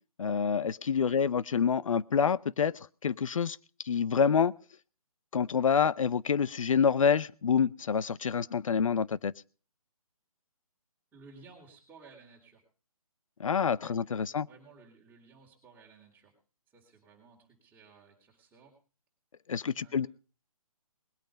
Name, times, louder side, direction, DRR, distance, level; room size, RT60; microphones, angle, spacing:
voice 1, 0.2-2.7 3.0-3.6 3.8-4.5 5.3-9.3 13.4-14.5 19.5-20.1, left 6 dB, 60° left, 0.7 m, -27 dB
voice 2, 11.1-12.6 13.8-16.3 16.7-18.7 19.7-20.1, right 4 dB, 10° right, 3.8 m, -57 dB
20.5 x 9.0 x 5.2 m
figure-of-eight pair, 145°, 19 cm